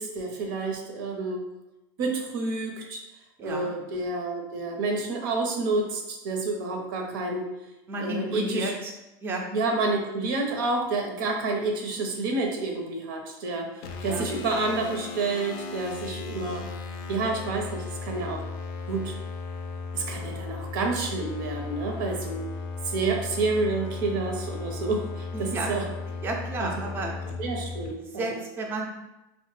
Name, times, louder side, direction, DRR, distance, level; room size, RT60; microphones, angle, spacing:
voice 1, 0.0-1.4 2.0-3.0 3.4-7.5 8.0-8.7 9.5-13.7 14.0-16.7 17.1-18.4 18.9-19.2 19.9-22.4 22.8-25.8 26.6-26.7 27.4-28.2, right 3 dB, 85° right, 2 dB, 0.7 m, -29 dB
voice 2, 3.4-3.7 7.9-8.9 9.2-9.5 14.0-14.3 25.3-25.7 26.2-27.1 28.0-28.9, right 2 dB, 20° right, 0 dB, 0.4 m, -32 dB
sound 1, 13.8-27.9, left 4 dB, 55° left, 0.4 m, -36 dB
3.0 x 2.1 x 3.1 m, 0.96 s
supercardioid pair, 140°, 11 cm